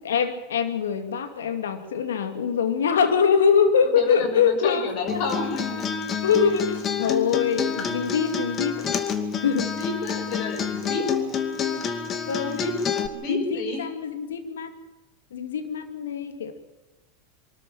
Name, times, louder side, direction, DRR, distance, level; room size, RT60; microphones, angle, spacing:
voice 1, 0.0-5.3 6.2-8.9 9.4-9.7 12.3-12.7 13.3-14.7 15.3-16.5, left 6 dB, 80° left, 8 dB, 2.5 m, -24 dB
voice 2, 3.8-5.8 7.0-7.2 9.3-11.2 12.4-12.7 13.1-13.8, left 3 dB, 55° left, 6 dB, 6.1 m, -31 dB
Acoustic guitar, 5.1-13.1, left 7 dB, 35° left, 2.4 m, -28 dB
24.5 x 13.5 x 8.9 m, 1.1 s
hypercardioid pair, 95°, 0 cm